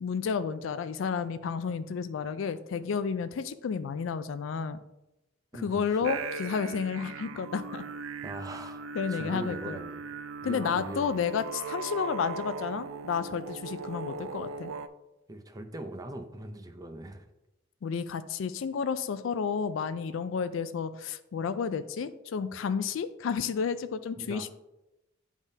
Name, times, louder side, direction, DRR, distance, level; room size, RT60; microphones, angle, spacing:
voice 1, 0.0-4.8 5.5-7.8 8.9-9.8 10.4-14.7 17.8-24.5, left 6 dB, 75° left, 12 dB, 0.4 m, -31 dB
voice 2, 5.5-6.1 8.2-10.0 10.4-11.2 15.3-17.3 24.2-24.5, right 1 dB, 20° right, 6 dB, 0.5 m, -41 dB
sound 1, 6.0-14.9, right 4 dB, 80° right, 0.4 m, -39 dB
10.0 x 3.6 x 2.7 m, 0.94 s
head